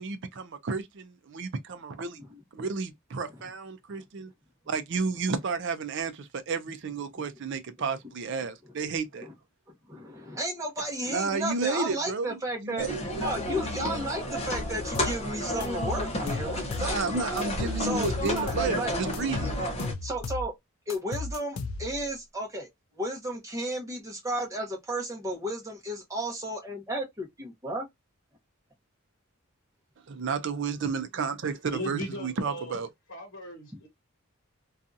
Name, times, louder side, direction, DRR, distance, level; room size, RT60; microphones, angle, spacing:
voice 1, 0.0-2.2 2.5-4.3 4.7-9.3 11.1-13.0 16.8-19.5 30.1-32.9, right 4 dB, 55° right, 0.5 m, -32 dB
voice 2, 9.9-12.9 13.2-17.4 17.8-18.9 20.0-20.5 20.9-22.7 22.9-27.9, right 1 dB, 15° right, 0.9 m, -33 dB
sound 1, 12.8-19.9, left 1 dB, 30° left, 0.7 m, -32 dB
sound 2, 14.9-15.2 15.6-17.0 17.4-18.7 19.1-20.5 20.9-22.1, left 3 dB, 85° left, 0.4 m, -34 dB
voice 3, 31.7-32.8 33.1-33.9, left 1 dB, 65° left, 0.9 m, -38 dB
2.6 x 2.3 x 2.5 m
head